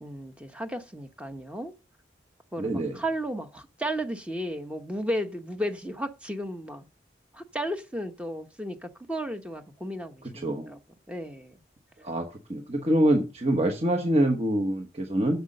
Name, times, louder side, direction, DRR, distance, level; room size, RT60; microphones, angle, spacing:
voice 1, 0.0-1.7 2.5-6.9 7.3-10.8 11.1-11.6, equal, 5° right, 0.9 m, -34 dB
voice 2, 2.6-3.0 10.3-10.7 12.0-15.4, right 1 dB, 35° right, 1.1 m, -25 dB
8.2 x 7.1 x 6.6 m
head